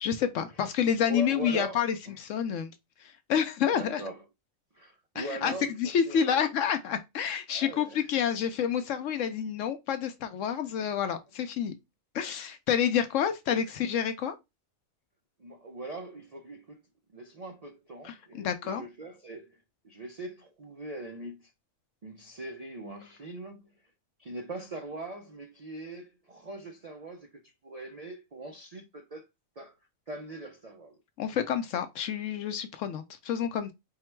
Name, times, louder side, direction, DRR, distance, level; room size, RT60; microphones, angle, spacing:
voice 1, 0.0-2.7 3.0-4.0 5.1-5.5 5.8-11.7 12.1-14.4 18.0-18.8 31.2-33.7, left 8 dB, 70° left, 0.9 m, -29 dB
voice 2, 1.1-2.2 3.7-4.2 4.7-6.5 7.5-8.2 15.4-16.8 17.1-21.5 22.0-23.9 24.2-29.3 29.6-29.7 30.1-31.0, right 2 dB, 70° right, 0.3 m, -41 dB
3.7 x 2.1 x 4.4 m
omnidirectional pair, 1.4 m